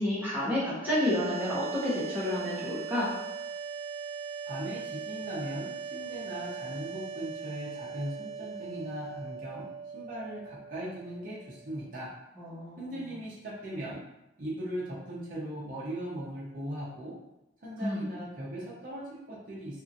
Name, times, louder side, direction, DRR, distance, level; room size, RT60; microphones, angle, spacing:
voice 1, 0.0-3.1 12.4-13.0 17.8-18.1, left 1 dB, 10° right, -8 dB, 0.9 m, -30 dB
sound 1, 0.8-11.9, right 6 dB, 90° right, 0.5 m, -40 dB
voice 2, 4.4-12.1 12.8-14.0 14.4-17.2 17.6-19.8, right 1 dB, 45° right, -7 dB, 0.7 m, -39 dB
2.7 x 2.5 x 2.5 m, 0.92 s
head